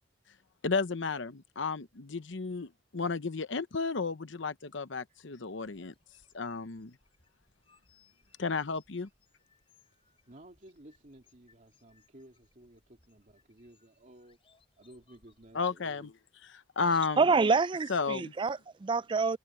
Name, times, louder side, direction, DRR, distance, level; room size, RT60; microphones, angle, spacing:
voice 1, 0.6-5.9 6.3-6.9 8.4-9.1 15.5-16.1 16.8-17.3 17.9-18.3, left 4 dB, 70° left, 0.9 m, -33 dB
sound 1, 5.6-15.7, left 4 dB, 30° left, 7.2 m, -69 dB
voice 2, 10.3-14.4 14.8-16.1, right 1 dB, 40° right, 2.6 m, -55 dB
voice 3, 17.2-19.4, right 4 dB, 25° right, 0.3 m, -27 dB
head